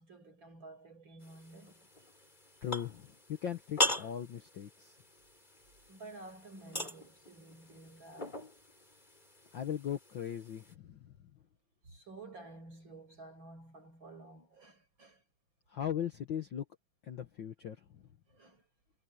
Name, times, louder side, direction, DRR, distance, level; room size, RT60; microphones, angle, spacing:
voice 1, 0.0-1.9 5.9-8.5 11.8-15.2 18.3-18.7, right 2 dB, 35° right, 6.9 m, -52 dB
sound 1, 1.2-10.7, left 1 dB, 15° left, 4.4 m, -40 dB
voice 2, 2.6-4.9 9.5-11.1 15.7-16.6 17.0-18.0, left 9 dB, 80° left, 1.0 m, -39 dB
omnidirectional pair, 3.9 m